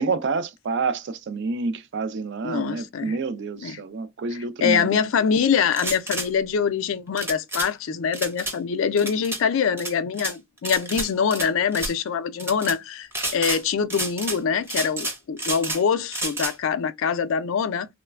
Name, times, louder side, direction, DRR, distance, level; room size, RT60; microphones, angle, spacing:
voice 1, 0.0-5.0, right 4 dB, 55° right, 0.4 m, -28 dB
voice 2, 2.4-3.2 3.6-3.8 4.6-17.9, left 6 dB, 60° left, 0.4 m, -24 dB
sound 1, 5.7-6.3 7.2-7.7 8.1-8.5 9.0-9.4 9.8-10.3 10.6-11.5 11.7-11.9 12.4-12.7 13.1-13.6 13.9-14.4 14.7-15.8 16.1-16.5, right 1 dB, 10° right, 0.6 m, -29 dB
3.1 x 2.1 x 2.3 m
head